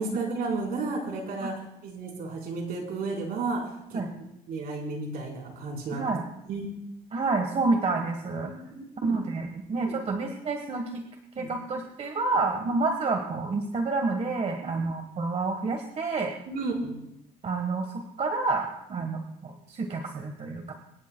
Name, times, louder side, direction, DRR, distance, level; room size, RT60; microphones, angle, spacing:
voice 1, 0.0-4.0 4.5-6.1 6.5-6.7 8.4-9.2 9.7-9.9 11.4-11.5 14.6-14.9 16.5-16.9 18.9-19.0, right 3 dB, 65° right, -1 dB, 4.1 m, -33 dB
voice 2, 5.9-6.2 7.1-8.5 9.0-11.0 11.4-16.3 17.4-20.7, right 3 dB, 40° right, 4 dB, 1.3 m, -29 dB
25.5 x 10.5 x 2.2 m, 0.83 s
cardioid pair, 110°, 17 cm